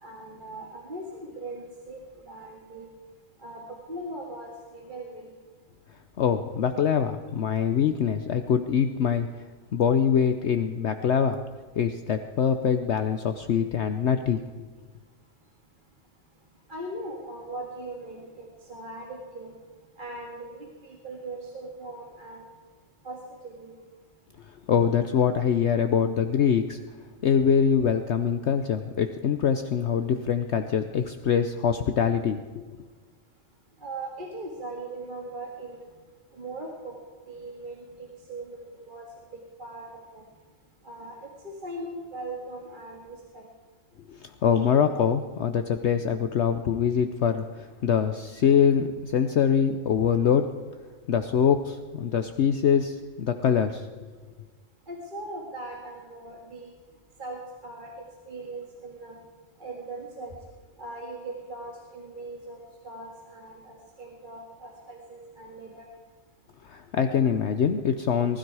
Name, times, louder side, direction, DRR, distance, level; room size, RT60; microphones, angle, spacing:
voice 1, 0.0-2.0 2.3-2.9 3.4-5.3 16.7-19.5 20.0-22.4 23.0-23.2 23.4-23.7 33.8-35.9 36.3-37.0 37.3-39.1 39.3-40.2 40.8-41.2 41.4-43.4 44.5-44.6 54.9-56.7 57.2-57.9 58.3-59.2 59.6-60.3 60.8-62.6 62.8-65.9, right 2 dB, 35° right, 0 dB, 2.0 m, -39 dB
voice 2, 6.2-9.3 9.7-11.4 11.8-14.4 24.7-26.8 27.2-32.7 44.1-50.5 51.1-53.9 66.6-68.4, left 7 dB, 60° left, 8 dB, 0.9 m, -24 dB
20.0 x 13.0 x 4.8 m, 1.5 s
omnidirectional pair, 1.4 m